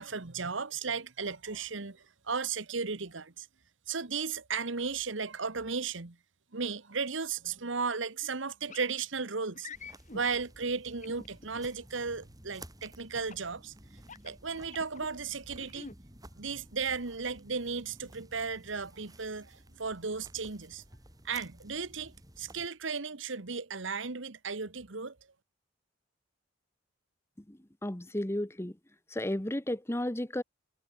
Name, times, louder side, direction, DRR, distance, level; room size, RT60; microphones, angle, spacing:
voice 1, 0.0-3.5 3.9-6.2 6.5-9.7 10.1-13.7 14.2-15.9 16.4-20.8 21.2-25.2, right 5 dB, 65° right, 1.4 m, -35 dB
sound 1, 8.7-8.9 9.5-10.2 11.0-11.6 13.1-13.5 14.0-15.1 15.5-16.0, left 4 dB, 40° left, 3.0 m, -47 dB
sound 2, 9.7-22.7, right 1 dB, 20° right, 7.9 m, -54 dB
voice 2, 27.5-28.8 29.1-30.4, left 1 dB, 15° left, 1.1 m, -33 dB
head